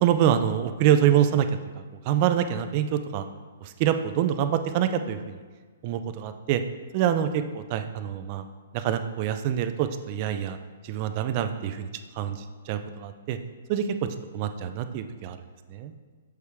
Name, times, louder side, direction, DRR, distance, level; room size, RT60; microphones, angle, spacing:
voice 1, 0.0-1.5 2.1-3.2 3.6-5.4 5.8-6.6 6.9-8.4 8.7-10.6 10.8-11.9 12.2-12.4 12.7-13.4 13.7-13.8 14.3-15.4 15.7-15.9, right 10 dB, 35° right, 9 dB, 0.4 m, -25 dB
6.9 x 4.8 x 3.4 m, 1.5 s
hypercardioid pair, 160°, 0 cm